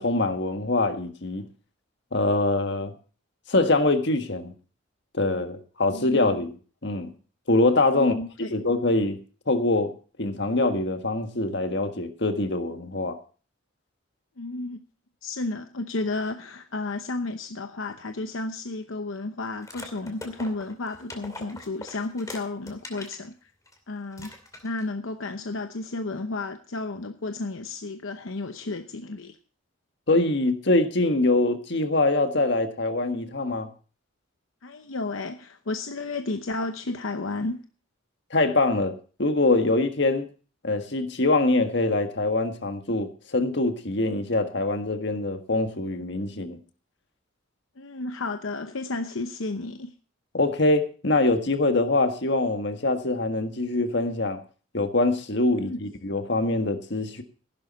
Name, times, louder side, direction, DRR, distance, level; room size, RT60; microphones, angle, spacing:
voice 1, 0.0-1.4 2.1-2.9 3.5-4.5 5.1-6.6 6.8-7.1 7.5-8.2 8.5-9.2 9.5-9.9 10.2-13.2 30.1-33.7 38.3-40.3 40.6-46.6 50.3-54.4 54.7-57.2, left 2 dB, 55° left, 1.6 m, -24 dB
voice 2, 7.9-8.5 14.4-14.8 15.2-23.5 23.9-24.3 24.6-29.4 34.6-37.6 47.8-49.9 55.5-55.8, left 2 dB, 75° left, 0.9 m, -32 dB
sound 1, 19.6-23.2 23.7-23.8 24.1-24.9, left 2 dB, 15° left, 2.5 m, -42 dB
15.5 x 11.5 x 4.2 m
head